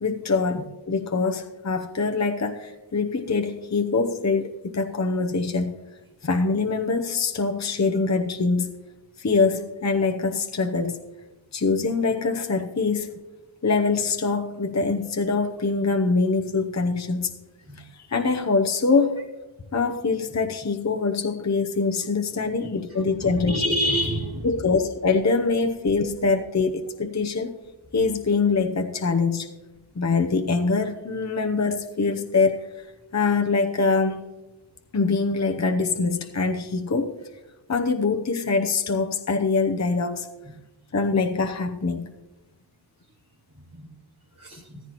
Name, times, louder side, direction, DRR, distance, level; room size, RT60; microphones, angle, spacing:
voice 1, 0.0-5.7 6.2-8.7 9.2-11.0 11.5-13.1 13.6-17.3 18.1-19.2 19.7-23.6 24.4-27.5 27.9-29.5 30.0-32.7 33.1-34.2 34.9-37.2 37.7-40.3 40.9-42.1, left 4 dB, 35° left, 0.8 m, -24 dB
voice 2, 23.2-24.5 43.7-43.9 44.4-44.8, equal, 40° right, 2.7 m, -27 dB
15.5 x 14.5 x 3.0 m
wide cardioid pair, 55°, 48 cm